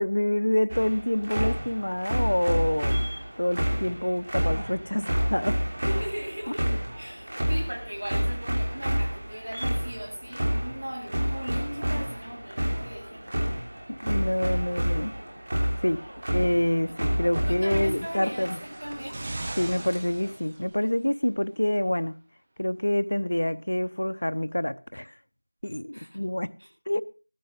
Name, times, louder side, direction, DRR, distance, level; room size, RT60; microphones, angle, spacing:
voice 1, 0.0-5.6 13.9-15.1 15.8-16.0 16.3-18.6 19.6-22.2 22.6-25.1 25.6-26.5 26.9-27.0, left 1 dB, 55° left, 0.7 m, -27 dB
sound 1, 0.7-20.3, equal, 30° right, 3.0 m, -30 dB
voice 2, 5.8-13.4 17.5-19.2 25.9-26.2 26.6-26.7, equal, 60° right, 7.7 m, -38 dB
sound 2, 17.7-21.1 22.0-22.1, right 2 dB, 15° right, 0.9 m, -40 dB
16.0 x 14.5 x 3.9 m
figure-of-eight pair, 175°, 0 cm